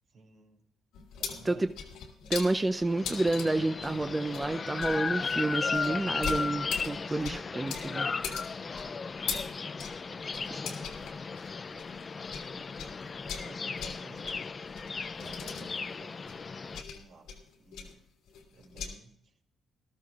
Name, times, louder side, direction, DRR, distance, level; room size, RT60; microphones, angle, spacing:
voice 1, 0.1-0.6 1.2-1.8 7.2-7.4 9.2-9.8 10.0-11.0 11.7-18.0 18.5-19.4, right 3 dB, 70° right, 1 dB, 2.6 m, -56 dB
sound 1, 0.9-12.5 12.8-18.9, left 6 dB, 90° left, 2.4 m, -41 dB
voice 2, 2.3-8.1 10.5-10.6, right 2 dB, 20° right, 8 dB, 0.5 m, -29 dB
sound 2, 2.8-16.8, left 4 dB, 35° left, 0.4 m, -36 dB
sound 3, 5.9-11.8, right 3 dB, 85° right, 4.3 m, -61 dB
19.5 x 13.0 x 2.4 m, 0.76 s
cardioid pair, 90°, 0 cm